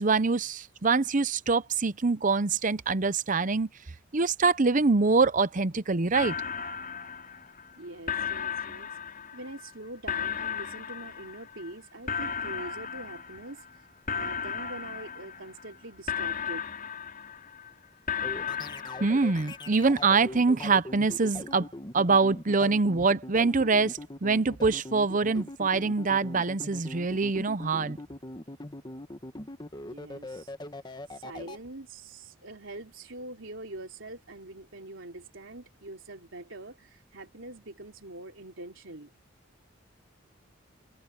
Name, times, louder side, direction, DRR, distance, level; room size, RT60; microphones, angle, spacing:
voice 1, 0.0-3.7 4.1-6.4 19.0-28.0, right 4 dB, 40° right, 0.7 m, -25 dB
sound 1, 6.1-7.8 8.1-9.7 10.1-11.7 12.1-13.8 14.1-15.8 16.1-17.7 18.1-19.7, left 7 dB, 45° left, 6.2 m, -35 dB
voice 2, 7.7-9.0 9.3-13.9 14.1-16.7 29.8-30.5 31.1-39.1, right 2 dB, 80° right, 3.2 m, -44 dB
sound 2, 18.2-31.6, left 1 dB, 20° left, 1.3 m, -41 dB
head